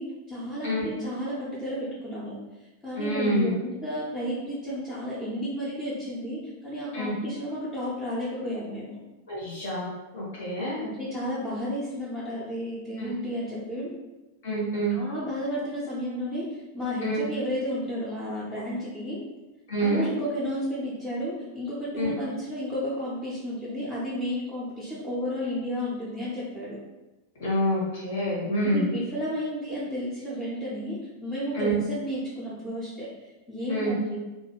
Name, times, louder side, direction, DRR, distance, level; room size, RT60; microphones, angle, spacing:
voice 1, 0.0-2.3 2.8-9.0 10.8-13.9 14.9-19.2 19.8-26.8 28.7-33.1 33.5-34.2, equal, 10° left, -10 dB, 0.8 m, -32 dB
voice 2, 3.0-3.5 6.9-7.1 9.3-10.8 13.0-13.1 14.4-14.9 17.0-17.2 19.7-20.1 22.0-22.1 27.4-28.9 31.5-31.7 33.7-33.9, equal, 55° left, -6 dB, 1.2 m, -27 dB
2.5 x 2.4 x 2.9 m, 1.1 s
figure-of-eight pair, 90°, 0 cm